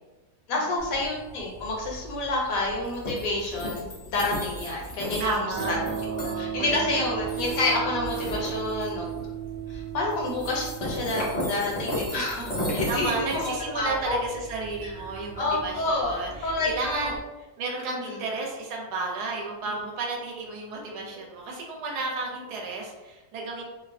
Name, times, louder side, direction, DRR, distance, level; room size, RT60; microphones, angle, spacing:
voice 1, 0.5-5.8 6.2-9.1 9.7-14.2 14.8-14.9 15.4-17.1 17.9-18.2 19.6-19.8, left 2 dB, 70° left, -2 dB, 1.0 m, -29 dB
sound 1, 0.8-17.2, equal, 45° left, 0.6 m, -36 dB
voice 2, 5.2-7.1 12.8-17.2 17.6-23.6, right 3 dB, 85° right, -1 dB, 1.2 m, -32 dB
sound 2, 5.5-15.6, right 9 dB, 60° right, 0.9 m, -37 dB
2.9 x 2.0 x 2.5 m, 1.1 s
omnidirectional pair, 1.7 m